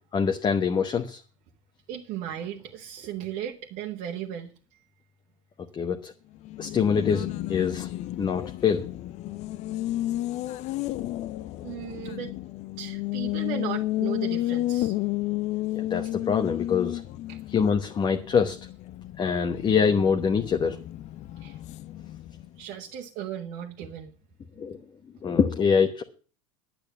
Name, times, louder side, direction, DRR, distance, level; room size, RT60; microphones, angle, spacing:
voice 1, 0.1-1.2 5.7-6.1 6.6-7.9 8.2-8.9 15.7-17.0 17.5-18.6 19.2-20.8 24.6-24.8 25.2-26.0, left 6 dB, 25° left, 5 dB, 1.1 m, -24 dB
voice 2, 1.9-4.5 11.5-12.3 12.8-15.0 17.3-17.4 21.4-21.6 22.5-24.1, right 10 dB, 50° right, 0 dB, 1.5 m, -36 dB
Race car auto racing, 6.4-22.6, left 15 dB, 40° left, 0.5 m, -32 dB
10.5 x 8.7 x 7.0 m, 0.38 s
hypercardioid pair, 85°, 17 cm